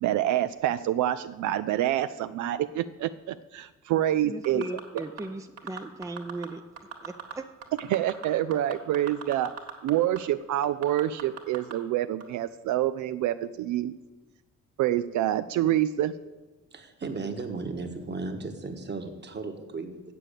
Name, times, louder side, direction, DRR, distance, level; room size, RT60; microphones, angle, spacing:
voice 1, 0.0-4.7 4.9-5.0 7.9-9.5 9.8-13.9 14.8-16.1, right 12 dB, 75° right, 12 dB, 0.4 m, -27 dB
voice 2, 4.2-6.6 7.0-7.5, right 2 dB, 10° right, 7 dB, 0.5 m, -37 dB
sound 1, 4.4-5.2 5.6-6.5 6.8-7.3 7.6-9.9 10.2-10.3 10.6-11.7 12.2-12.3, right 7 dB, 55° right, 1.9 m, -38 dB
voice 3, 16.7-20.0, right 3 dB, 35° right, 6 dB, 1.4 m, -35 dB
7.5 x 6.9 x 8.2 m, 1.2 s
cardioid pair, 90°, 30 cm